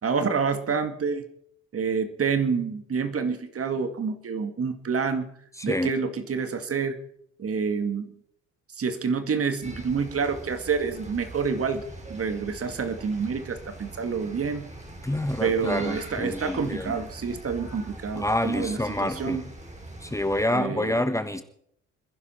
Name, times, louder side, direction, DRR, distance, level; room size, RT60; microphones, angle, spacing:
voice 1, 0.0-1.2 1.7-5.3 5.6-7.0 7.4-8.1 8.7-11.8 12.1-14.7 15.4-19.4 20.5-21.0, right 5 dB, 40° right, 9 dB, 2.1 m, -28 dB
voice 2, 5.6-5.9 15.0-16.9 18.1-19.4 20.0-21.4, left 1 dB, 10° left, 9 dB, 1.3 m, -27 dB
sound 1, 9.6-20.5, right 2 dB, 20° right, 4.1 m, -42 dB
26.5 x 11.0 x 4.5 m, 0.68 s
supercardioid pair, 70°, 34 cm